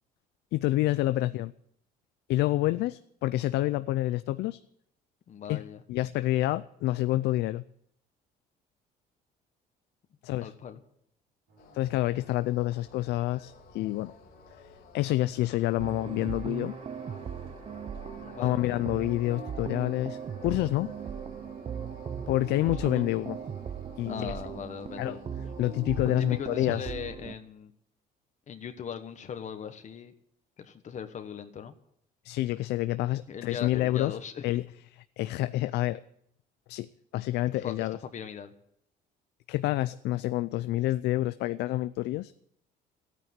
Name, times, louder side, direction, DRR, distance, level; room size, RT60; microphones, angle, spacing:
voice 1, 0.5-1.5 2.3-4.6 5.5-5.6 5.9-7.6 10.2-10.5 11.7-14.1 14.9-16.8 18.4-20.9 22.3-23.4 24.0-24.3 25.0-25.2 25.6-26.9 32.2-34.2 34.4-34.6 35.2-36.0 36.7-36.9 37.1-38.0 39.5-42.3, left 16 dB, 80° left, 13 dB, 0.5 m, -28 dB
voice 2, 5.3-5.8 10.4-10.8 18.2-18.5 22.7-23.1 24.1-25.4 26.0-27.7 28.5-30.1 30.6-31.7 33.3-34.6 37.5-38.5, left 7 dB, 45° left, 8 dB, 1.3 m, -40 dB
sound 1, 11.5-26.5, right 5 dB, 80° right, 5.3 m, -60 dB
sound 2, 11.6-26.7, left 7 dB, 60° left, 2.5 m, -53 dB
sound 3, 15.8-27.3, right 7 dB, 35° right, 0.8 m, -38 dB
13.5 x 9.4 x 9.7 m, 0.71 s
cardioid pair, 110°, 17 cm